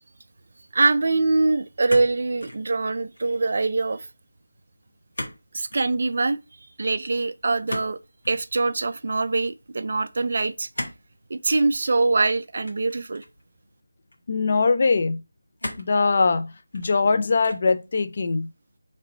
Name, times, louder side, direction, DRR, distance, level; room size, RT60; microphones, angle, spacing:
voice 1, 0.7-4.1 5.5-6.4 6.8-8.0 8.3-10.7 11.3-13.2, right 3 dB, 45° right, 0.3 m, -23 dB
sound 1, 1.9-2.6 3.0-3.4 5.1-5.4 5.7-5.9 7.7-8.5 10.7-11.1 11.5-11.7 12.6-13.4 14.1-14.2 15.6-16.0 16.6-17.1 17.4-17.8, left 1 dB, 70° left, 1.2 m, -35 dB
voice 2, 14.3-15.2 15.8-18.5, left 4 dB, 35° left, 0.3 m, -22 dB
3.0 x 2.9 x 3.8 m
figure-of-eight pair, 170°, 0 cm